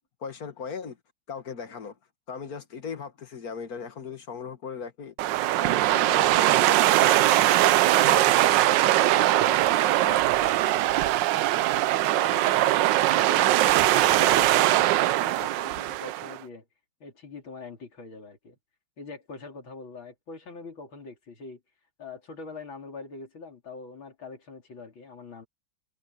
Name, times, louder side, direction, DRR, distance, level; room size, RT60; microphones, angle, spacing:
voice 1, 0.2-1.0 1.3-2.0 2.3-5.1 5.6-11.0, left 6 dB, 50° left, 1.9 m, -38 dB
sound 1, 5.2-16.4, right 15 dB, 75° right, 1.2 m, -21 dB
voice 2, 11.3-11.7 12.1-16.7 17.0-18.6 19.0-21.6 22.0-25.5, left 4 dB, 80° left, 4.2 m, -42 dB
omnidirectional pair, 2.2 m